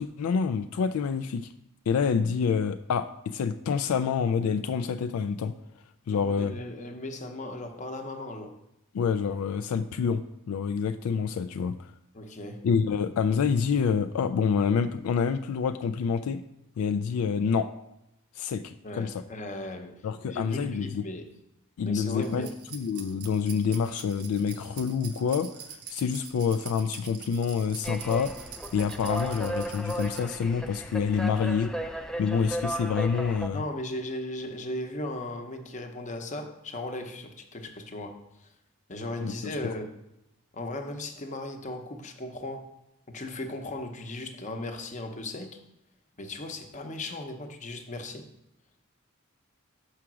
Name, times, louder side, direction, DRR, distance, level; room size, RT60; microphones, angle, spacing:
voice 1, 0.0-1.5 1.9-5.5 6.1-6.6 8.9-10.2 10.5-11.9 12.6-16.4 16.8-17.7 18.4-19.1 20.0-21.0 21.8-25.5 25.9-28.3 28.7-31.7 32.2-33.6 39.2-39.5, left 6 dB, 80° left, 9 dB, 0.3 m, -27 dB
voice 2, 6.1-8.6 12.1-12.6 18.8-20.0 20.3-21.3 21.8-22.5 33.5-38.5 38.9-39.9 40.5-42.7 43.1-45.6 46.2-48.2, left 1 dB, 35° left, 5 dB, 0.8 m, -37 dB
sound 1, 22.2-30.2, right 7 dB, 90° right, 0.9 m, -45 dB
sound 2, 27.8-33.5, right 1 dB, 5° left, 0.3 m, -35 dB
5.8 x 4.9 x 6.1 m, 0.87 s
head